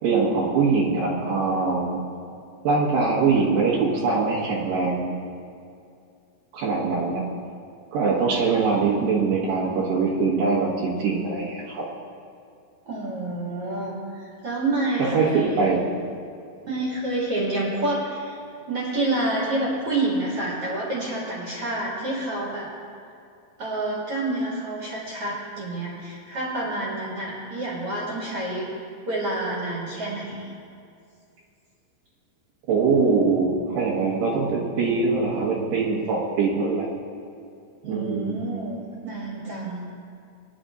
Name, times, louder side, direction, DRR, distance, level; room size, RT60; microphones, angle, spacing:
voice 1, 0.0-2.0 2.6-5.2 6.5-7.2 7.9-11.8 15.0-15.8 32.7-36.9 37.8-38.4, right 4 dB, 80° right, -6 dB, 3.5 m, -23 dB
voice 2, 12.9-15.6 16.6-18.4 18.7-22.7 23.6-28.7 29.1-30.5 37.8-39.8, right 2 dB, 40° right, -6 dB, 2.5 m, -28 dB
20.5 x 10.5 x 2.6 m, 2.4 s
omnidirectional pair, 4.9 m